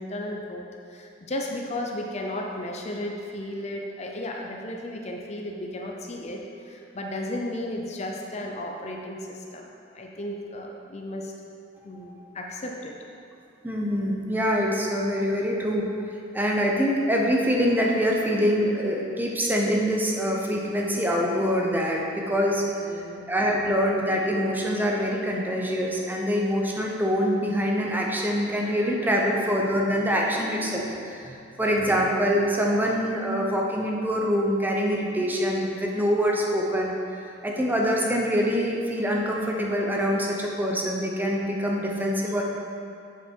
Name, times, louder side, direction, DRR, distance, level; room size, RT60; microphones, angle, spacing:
voice 1, 0.0-11.3 11.8-13.0 22.6-23.3, left 1 dB, 35° left, 0 dB, 0.6 m, -34 dB
voice 2, 13.6-15.9 16.3-22.6 23.3-36.9 37.4-42.4, equal, 10° right, -2 dB, 0.7 m, -25 dB
7.3 x 5.6 x 4.5 m, 2.6 s
head